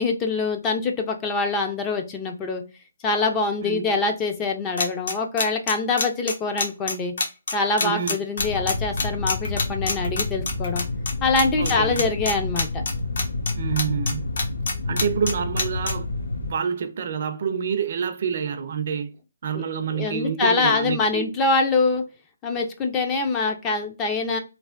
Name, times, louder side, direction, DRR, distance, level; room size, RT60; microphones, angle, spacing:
voice 1, 0.0-2.6 3.0-7.1 7.5-10.8 11.2-12.8 19.9-22.0 22.4-24.4, left 3 dB, 15° left, 0.4 m, -24 dB
voice 2, 3.6-4.0 7.8-8.2 11.6-12.0 13.6-14.2 14.9-19.1 19.4-21.3, right 7 dB, 50° right, 0.4 m, -28 dB
sound 1, 4.8-11.1 11.4-11.7 12.0-13.5 13.8-15.9, left 3 dB, 60° left, 1.0 m, -25 dB
sound 2, 8.4-16.5, left 3 dB, 90° left, 1.1 m, -29 dB
3.2 x 2.1 x 2.4 m
hypercardioid pair, 155°, 0 cm